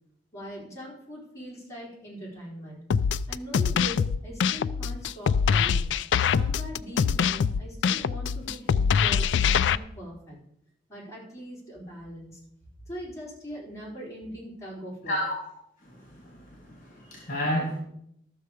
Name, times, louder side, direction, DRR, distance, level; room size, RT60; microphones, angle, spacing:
voice 1, 0.3-2.8 3.3-5.9 6.3-10.4 10.9-12.4 12.9-15.2, equal, 15° left, -5 dB, 3.9 m, -41 dB
sound 1, 2.9-9.8, left 6 dB, 70° left, 0.3 m, -24 dB
voice 2, 15.8-17.8, equal, 45° left, -1 dB, 2.4 m, -31 dB
13.0 x 6.7 x 4.9 m, 0.73 s
head